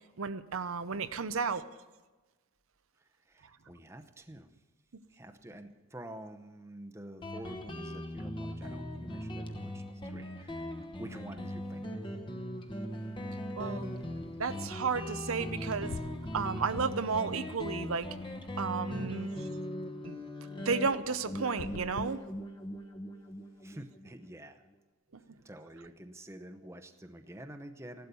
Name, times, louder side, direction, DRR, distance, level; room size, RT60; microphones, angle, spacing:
voice 1, 0.2-1.6 13.6-13.9 14.4-16.0 16.3-18.1 18.6-19.5 20.0-20.2 20.6-22.2, right 5 dB, 80° right, 11 dB, 0.8 m, -33 dB
voice 2, 3.3-4.5 5.1-12.0 23.6-24.6 25.4-28.1, right 1 dB, 10° right, 6 dB, 0.8 m, -48 dB
Guitar, 7.2-24.4, equal, 20° left, 1.1 m, -39 dB
sound 1, 15.9-17.2 17.5-18.6 21.4-23.0, left 6 dB, 90° left, 0.4 m, -46 dB
16.0 x 12.5 x 6.9 m, 1.2 s
head